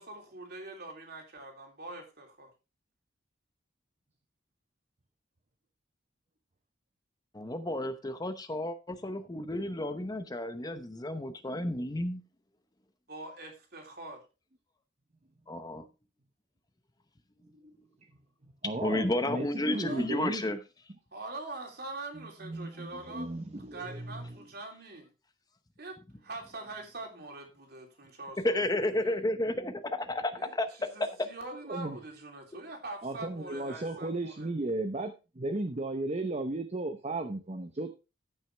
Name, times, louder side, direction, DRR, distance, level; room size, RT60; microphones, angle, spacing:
voice 1, 0.0-2.5 13.1-14.2 19.7-20.1 21.1-23.3 23.7-25.1 25.8-29.2 30.4-30.5 30.8-34.5, right 2 dB, 60° right, 2 dB, 3.2 m, -44 dB
voice 2, 7.3-12.2 15.5-15.9 18.8-20.6 28.4-31.3, left 1 dB, 20° left, 9 dB, 0.8 m, -32 dB
voice 3, 18.4-20.4 22.1-24.4 31.7-32.0 33.0-37.9, right 2 dB, 35° right, 6 dB, 0.8 m, -35 dB
14.0 x 6.2 x 3.4 m, 0.29 s
head